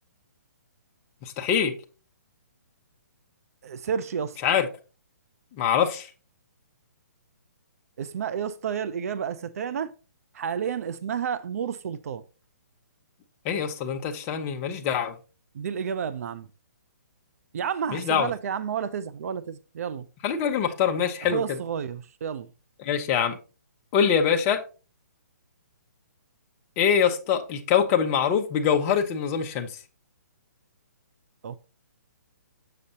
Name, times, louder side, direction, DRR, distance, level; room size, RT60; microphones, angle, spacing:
voice 1, 1.2-1.7 4.4-4.7 5.6-6.1 13.4-15.1 17.9-18.3 20.2-21.4 22.8-23.4 23.9-24.6 26.8-29.7, left 7 dB, 25° left, 0.7 m, -24 dB
voice 2, 3.6-4.4 8.0-9.9 10.3-12.2 15.5-16.5 17.5-20.1 21.2-22.5 31.4-31.6, right 7 dB, 60° right, 0.5 m, -31 dB
6.8 x 6.4 x 2.8 m
hypercardioid pair, 150°, 9 cm